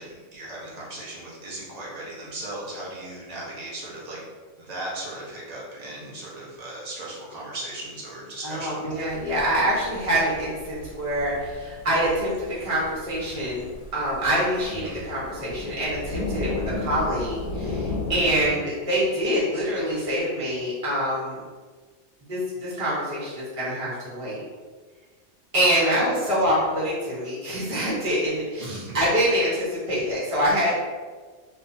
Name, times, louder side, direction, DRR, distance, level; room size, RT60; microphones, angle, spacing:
voice 1, 0.0-4.2 4.6-8.9 14.7-15.0 18.4-18.6 25.8-26.0 26.5-26.6 28.6-29.0, right 1 dB, 60° right, -5 dB, 0.4 m, -37 dB
voice 2, 8.4-21.4 22.3-24.4 25.5-30.7, equal, 30° right, -8 dB, 0.8 m, -25 dB
sound 1, 9.0-18.5, left 2 dB, 80° left, 1.0 m, -35 dB
2.6 x 2.1 x 2.5 m, 1.4 s
omnidirectional pair, 1.5 m